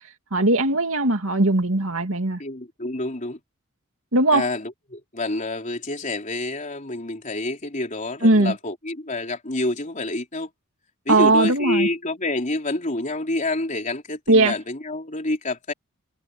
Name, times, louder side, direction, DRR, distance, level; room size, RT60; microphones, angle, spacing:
voice 1, 0.3-2.4 4.1-4.5 8.2-8.6 11.1-11.9 14.3-14.6, right 2 dB, 65° right, 2.5 m, -19 dB
voice 2, 2.4-3.4 4.3-10.5 11.1-15.7, left 2 dB, 35° left, 3.8 m, -28 dB
head